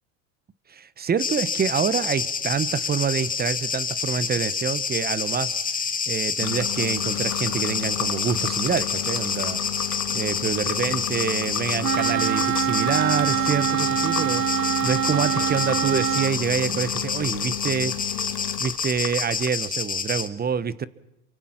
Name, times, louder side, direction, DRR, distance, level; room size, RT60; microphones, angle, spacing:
voice 1, 0.7-5.6 6.1-9.6 10.1-14.4 14.8-18.0 18.6-20.9, right 6 dB, 20° right, 1.0 m, -26 dB
sound 1, 1.2-20.3, left 5 dB, 20° left, 1.9 m, -28 dB
sound 2, 6.4-19.5, left 13 dB, 50° left, 1.7 m, -33 dB
Wind instrument woodwind instrument, 11.8-16.4, right 10 dB, 80° right, 1.4 m, -24 dB
28.5 x 24.0 x 5.9 m
supercardioid pair, 100°, 42 cm